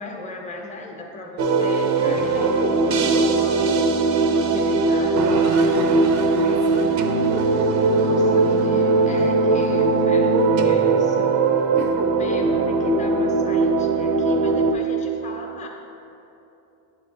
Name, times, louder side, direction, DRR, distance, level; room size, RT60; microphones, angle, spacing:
voice 1, 0.0-3.9 4.2-5.9 7.9-11.4 12.2-15.7, left 1 dB, 15° left, 1 dB, 0.9 m, -36 dB
sound 1, 1.4-14.7, right 3 dB, 40° right, 0.6 m, -19 dB
voice 2, 2.0-3.1 3.5-4.0 6.3-7.0 8.2-9.1 11.8-12.0 12.4-12.9, left 7 dB, 50° left, 1 dB, 0.5 m, -37 dB
8.8 x 3.6 x 4.2 m, 2.9 s
supercardioid pair, 110°, 48 cm